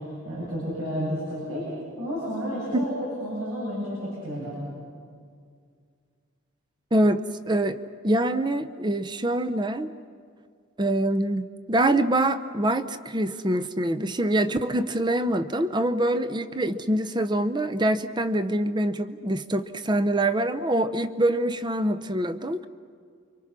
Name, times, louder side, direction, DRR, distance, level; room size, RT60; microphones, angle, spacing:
voice 1, 0.2-1.7 2.0-4.6, equal, 85° right, -5 dB, 7.7 m, -31 dB
voice 2, 6.9-7.8 8.0-9.9 10.8-22.7, right 1 dB, 20° right, 11 dB, 0.7 m, -25 dB
29.5 x 24.5 x 6.1 m, 2.2 s
head